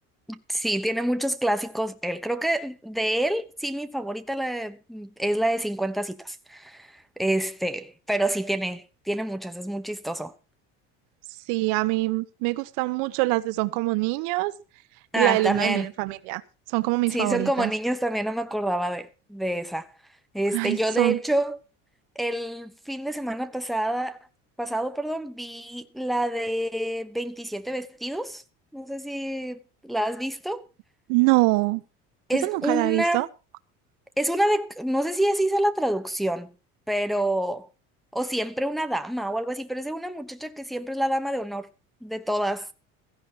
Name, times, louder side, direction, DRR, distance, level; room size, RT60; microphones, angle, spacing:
voice 1, 0.3-10.3 15.1-15.9 17.1-19.9 20.3-21.6 22.1-24.2 24.6-28.4 28.7-30.7 32.3-33.2 34.2-36.5 36.9-37.7 38.1-41.7 42.0-42.7, right 1 dB, ahead, 1.1 m, -27 dB
voice 2, 11.5-14.5 15.2-16.4 16.7-17.7 20.5-21.2 31.1-31.8 32.4-33.3, right 22 dB, 80° right, 1.2 m, -24 dB
16.5 x 14.5 x 2.9 m
cardioid pair, 140°, 30 cm